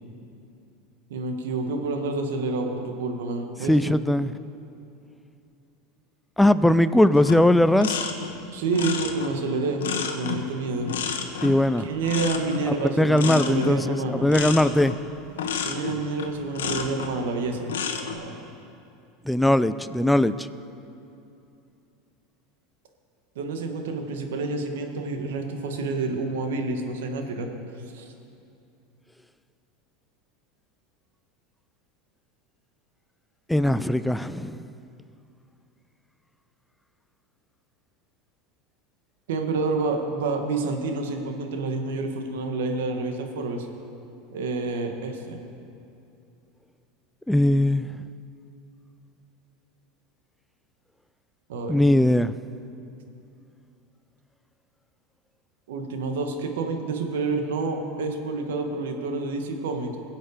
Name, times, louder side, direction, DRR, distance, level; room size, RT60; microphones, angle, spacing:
voice 1, 1.1-3.9 8.5-9.8 10.1-10.9 11.8-14.3 15.6-17.7 18.0-18.5 23.3-27.5 27.9-28.1 39.3-43.6 44.3-45.4 51.5-51.9 55.7-60.0, right 3 dB, 80° right, 4 dB, 1.6 m, -28 dB
voice 2, 3.7-4.3 6.4-8.0 11.4-11.8 12.7-14.0 14.2-14.9 19.3-20.5 33.5-34.6 47.3-48.0 51.7-52.3, left 1 dB, 5° left, 13 dB, 0.5 m, -20 dB
sound 1, 7.2-17.2 17.6-18.1, left 7 dB, 85° left, 1.2 m, -31 dB
21.0 x 7.9 x 5.0 m, 2.7 s
hypercardioid pair, 100°, 0 cm